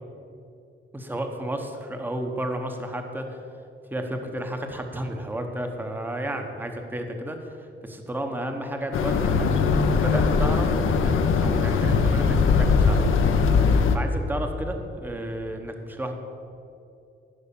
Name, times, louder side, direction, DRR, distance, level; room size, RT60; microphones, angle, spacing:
voice 1, 0.9-3.4 3.9-9.5 10.0-11.1 11.4-13.0 13.9-16.1, right 1 dB, 10° right, 4 dB, 0.9 m, -32 dB
sound 1, 8.9-14.0, left 5 dB, 80° left, 1.0 m, -20 dB
14.5 x 6.2 x 7.0 m, 2.6 s
wide cardioid pair, 160°, 21 cm